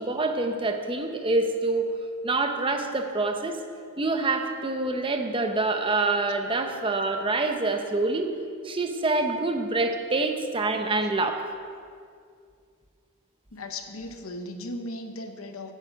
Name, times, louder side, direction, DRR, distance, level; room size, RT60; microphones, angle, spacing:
voice 1, 0.0-1.9 2.2-3.6 4.0-8.3 8.6-11.4, right 3 dB, 25° right, 6 dB, 0.8 m, -26 dB
voice 2, 13.5-15.7, left 1 dB, 80° left, 6 dB, 1.0 m, -37 dB
9.5 x 9.3 x 6.3 m, 2.2 s
head